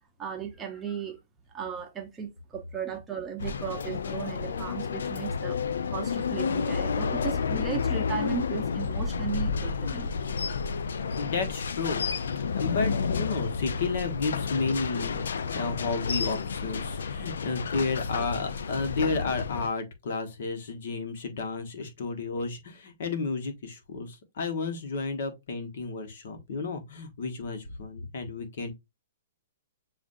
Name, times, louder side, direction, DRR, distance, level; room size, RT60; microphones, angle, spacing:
voice 1, 0.2-1.2 1.5-5.6 5.9-10.1, right 6 dB, 15° right, 0.7 m, -36 dB
sound 1, 3.4-19.7, left 5 dB, 80° left, 0.4 m, -30 dB
voice 2, 11.1-15.2 15.5-28.7, left 4 dB, 60° left, 1.3 m, -32 dB
7.1 x 2.5 x 2.6 m
hypercardioid pair, 160°, 0 cm